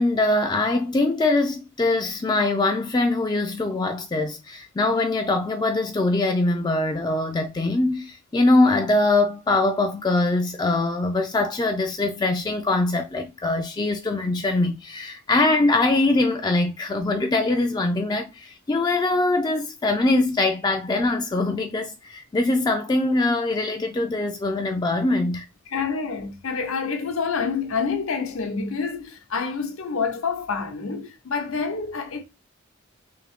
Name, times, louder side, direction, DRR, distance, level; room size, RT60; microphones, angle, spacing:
voice 1, 0.0-25.5, left 2 dB, 20° left, 0.3 m, -22 dB
voice 2, 25.7-32.2, left 5 dB, 80° left, 0.8 m, -27 dB
3.5 x 2.7 x 3.5 m
head